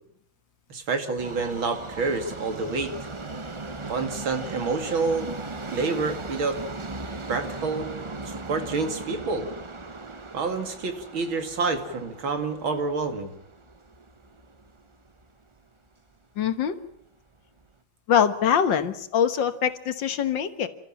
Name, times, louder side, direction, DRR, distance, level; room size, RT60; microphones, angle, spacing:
voice 1, 0.7-2.9 3.9-5.3 5.7-6.6 7.3-7.9 8.5-9.4 10.3-13.3, right 4 dB, 85° right, 7 dB, 3.2 m, -28 dB
Subway metro underground, 1.2-15.3 15.6-15.7 16.5-16.6 16.9-17.0 17.6-17.7, right 3 dB, 30° right, 0.5 m, -38 dB
voice 2, 16.4-16.8 18.1-20.7, left 8 dB, 70° left, 10 dB, 2.0 m, -23 dB
29.5 x 13.5 x 8.7 m, 0.72 s
omnidirectional pair, 2.1 m